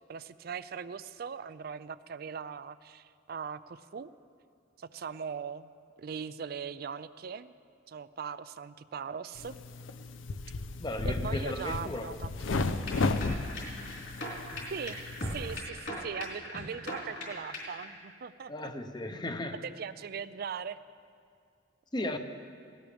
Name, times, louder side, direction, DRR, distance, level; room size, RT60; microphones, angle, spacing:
voice 1, 0.1-4.1 4.8-5.7 6.0-7.5 7.9-9.6 11.0-12.3 14.7-18.7 19.6-20.8 22.0-22.2, right 6 dB, 50° right, 15 dB, 0.4 m, -40 dB
sound 1, 9.3-15.6, left 3 dB, 85° left, 0.6 m, -34 dB
voice 2, 10.8-12.3 18.5-19.6 21.9-22.2, left 1 dB, 25° left, 7 dB, 0.8 m, -36 dB
sound 2, 12.5-17.9, left 1 dB, 65° left, 4.1 m, -39 dB
18.5 x 17.0 x 3.5 m, 2.3 s
head